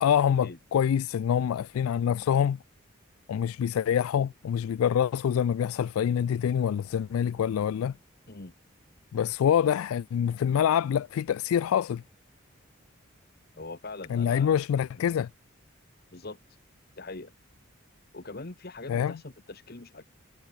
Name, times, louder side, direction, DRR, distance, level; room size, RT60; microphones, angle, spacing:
voice 1, 0.0-2.6 3.3-7.9 9.1-12.0 14.1-15.3 18.9-19.1, left 8 dB, 80° left, 0.3 m, -26 dB
Thunder, 3.0-14.1, equal, ahead, 5.5 m, -67 dB
voice 2, 13.6-14.6 14.9-15.1 16.1-16.4 17.0-17.3 18.1-20.0, left 3 dB, 45° left, 1.2 m, -42 dB
head